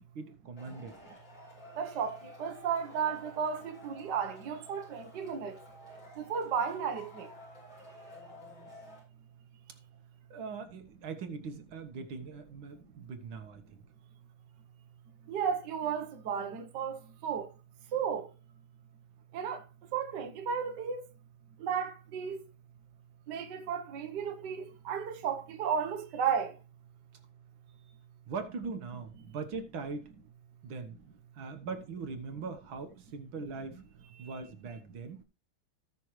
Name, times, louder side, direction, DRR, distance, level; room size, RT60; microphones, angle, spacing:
voice 1, 0.2-1.0 10.3-13.8 28.3-30.1 30.6-31.0 31.3-33.8 34.2-35.2, right 4 dB, 80° right, 2.0 m, -41 dB
Male speech man speaking / Shout / Clapping, 0.6-9.0, left 1 dB, 65° left, 6.5 m, -52 dB
voice 2, 1.8-5.6 6.2-7.3 15.3-17.5 17.9-18.3 19.3-19.6 19.9-21.0 21.6-22.4 23.3-26.5, right 7 dB, 60° right, 1.6 m, -34 dB
18.0 x 6.2 x 3.1 m
omnidirectional pair, 2.2 m